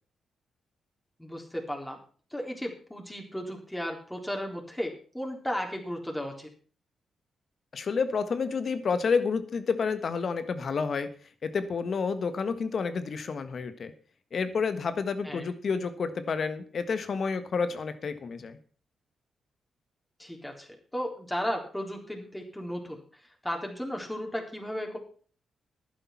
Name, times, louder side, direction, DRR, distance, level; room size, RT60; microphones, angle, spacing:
voice 1, 1.2-2.0 2.3-6.5 15.2-15.4 20.2-23.0 23.4-25.0, equal, 10° left, 1 dB, 3.9 m, -35 dB
voice 2, 7.7-11.1 11.4-13.9 14.3-18.6, left 5 dB, 60° left, 11 dB, 1.5 m, -29 dB
11.0 x 10.0 x 6.0 m, 0.43 s
hypercardioid pair, 40°, 0 cm